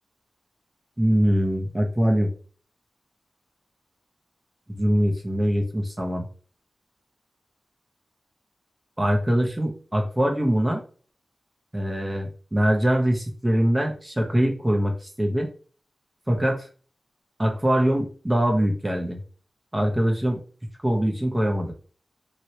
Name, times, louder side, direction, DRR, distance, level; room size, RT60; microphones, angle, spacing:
voice 1, 1.0-2.3 4.7-6.3 9.0-10.8 11.7-15.5 16.3-16.7 17.4-19.2 19.7-20.4 20.8-21.7, equal, 20° right, 2 dB, 0.9 m, -23 dB
3.0 x 2.9 x 2.8 m, 0.41 s
cardioid pair, 50°, 0 cm